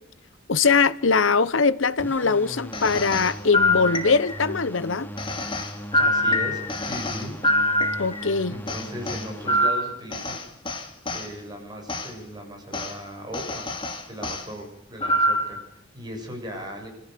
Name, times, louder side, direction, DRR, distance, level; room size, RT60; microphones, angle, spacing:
voice 1, 0.5-5.1 8.0-8.5, left 4 dB, 75° left, 0.9 m, -21 dB
sound 1, 2.0-9.7, equal, 10° left, 2.2 m, -38 dB
sound 2, 2.7-4.5 5.2-8.3 8.7-11.3 11.9-12.1 12.7-12.9 13.3-14.4 15.0-15.6, left 1 dB, 25° left, 2.5 m, -25 dB
voice 2, 6.0-7.3 8.5-10.4 11.1-13.7 14.1-16.9, equal, 20° right, 6.9 m, -37 dB
26.0 x 14.5 x 6.8 m
head